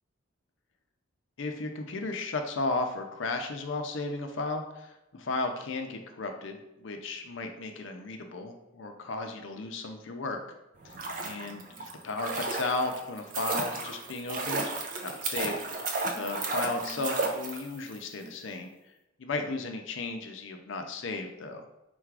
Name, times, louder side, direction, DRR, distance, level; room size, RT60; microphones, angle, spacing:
voice 1, 1.4-10.4 10.8-10.9 11.2-14.7 15.0-18.7 19.2-21.6, left 3 dB, 65° left, 5 dB, 0.5 m, -35 dB
sound 1, 10.8-17.9 18.2-18.3, right 3 dB, 40° right, 0.5 m, -33 dB
3.8 x 2.4 x 4.6 m, 0.95 s
head